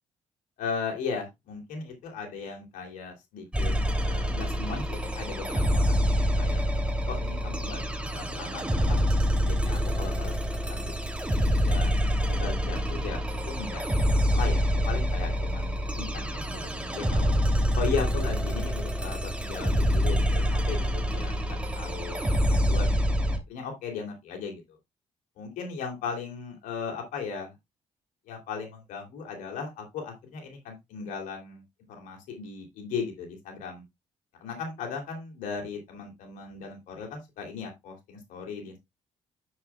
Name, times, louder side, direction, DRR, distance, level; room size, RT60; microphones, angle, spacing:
voice 1, 0.6-3.7 4.0-7.8 8.1-9.1 9.4-10.3 10.7-10.9 11.6-11.9 12.3-17.3 17.7-22.2 22.5-24.8 25.4-27.5 28.3-31.6 31.9-33.8 34.4-38.8, left 5 dB, 80° left, 2 dB, 2.9 m, -37 dB
sound 1, 3.5-23.4, equal, 10° right, 2.8 m, -26 dB
9.7 x 7.3 x 2.3 m, 0.20 s
supercardioid pair, 70°, 13 cm